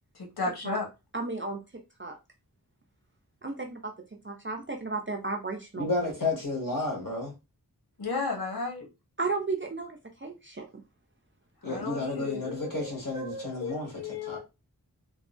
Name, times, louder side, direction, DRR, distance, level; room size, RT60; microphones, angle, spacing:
voice 1, 0.1-0.9 8.0-8.9 11.6-12.9 13.1-14.4, left 4 dB, 90° left, 0.9 m, -34 dB
voice 2, 1.1-1.6 2.0-2.1 3.4-3.9 4.2-5.8 9.2-10.6, right 3 dB, 35° right, 0.5 m, -33 dB
voice 3, 5.7-7.3 11.6-14.4, left 2 dB, 60° left, 1.5 m, -32 dB
3.6 x 2.0 x 2.4 m
wide cardioid pair, 40°, 37 cm